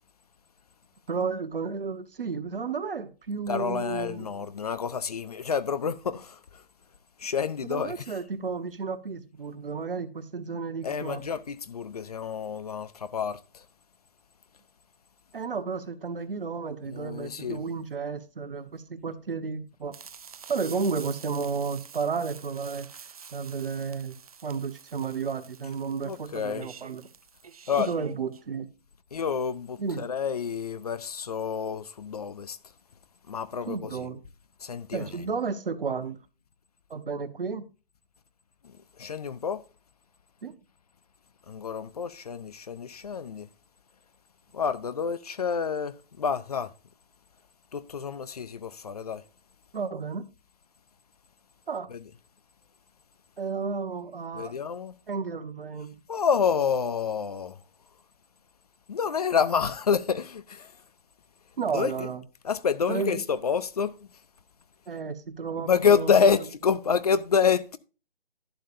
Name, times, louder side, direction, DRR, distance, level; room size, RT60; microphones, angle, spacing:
voice 1, 1.1-4.3 7.6-11.2 15.3-19.9 20.5-22.9 23.3-24.2 24.4-27.0 27.8-28.7 29.8-30.1 33.7-34.2 34.9-36.2 36.9-37.6 40.4-40.5 49.7-50.2 51.7-51.9 53.4-54.5 55.1-56.0 61.6-62.2 62.9-63.2 64.9-66.1, right 5 dB, 70° right, 1.3 m, -32 dB
voice 2, 3.5-6.6 7.2-8.2 10.8-13.7 16.9-17.7 26.0-26.7 27.7-27.9 29.1-32.6 33.3-34.1 34.6-35.3 38.6-39.6 41.5-43.5 44.5-46.7 47.7-49.2 51.9-52.0 54.3-54.9 56.1-57.6 58.9-60.8 61.7-62.1 62.4-63.9 65.7-67.8, left 6 dB, 40° left, 0.6 m, -28 dB
sound 1, 19.9-28.4, right 6 dB, 40° right, 0.4 m, -48 dB
11.5 x 7.7 x 2.6 m
hypercardioid pair, 155°, 29 cm